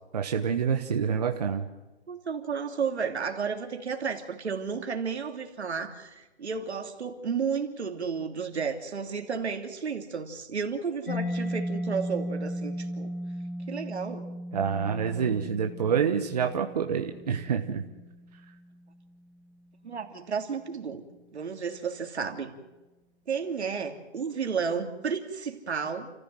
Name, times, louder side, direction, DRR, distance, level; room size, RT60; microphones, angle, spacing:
voice 1, 0.1-1.7 14.5-17.8, right 7 dB, 35° right, 3 dB, 1.3 m, -27 dB
voice 2, 2.1-13.1 13.7-14.3 19.8-21.0 21.3-22.5 23.3-26.1, right 6 dB, 75° right, 5 dB, 3.1 m, -32 dB
Mallet percussion, 11.1-18.6, equal, 55° left, 3.6 m, -36 dB
30.0 x 15.0 x 7.8 m, 1.1 s
hypercardioid pair, 175°, 33 cm